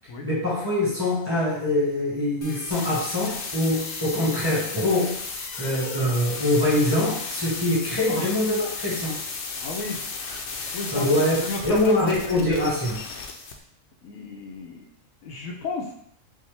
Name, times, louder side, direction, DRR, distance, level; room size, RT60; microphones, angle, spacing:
voice 1, 0.2-5.2 5.6-9.2 10.9-11.4 11.6-13.0, left 1 dB, 20° right, -7 dB, 1.4 m, -24 dB
sound 1, 2.4-13.5, left 4 dB, 65° left, 0.9 m, -34 dB
voice 2, 9.6-10.0 10.7-11.1 11.4-12.4 14.0-14.9 15.2-15.9, left 3 dB, 90° left, 1 dB, 1.1 m, -32 dB
5.4 x 2.1 x 3.3 m, 0.68 s
omnidirectional pair, 1.4 m